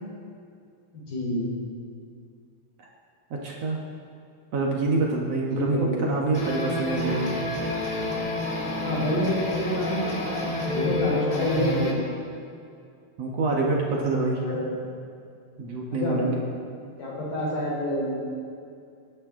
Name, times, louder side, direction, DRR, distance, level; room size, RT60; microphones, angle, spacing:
voice 1, 0.9-1.5 5.5-6.1 8.8-12.0 14.4-14.9 15.9-16.4 17.0-18.2, equal, 60° left, -5 dB, 5.8 m, -28 dB
voice 2, 3.3-3.8 4.5-7.3 13.2-14.4 15.6-16.4, right 3 dB, 60° right, -2 dB, 1.7 m, -26 dB
sound 1, 6.3-11.9, left 1 dB, 40° left, 1.1 m, -29 dB
23.5 x 11.5 x 3.9 m, 2.4 s
omnidirectional pair, 4.8 m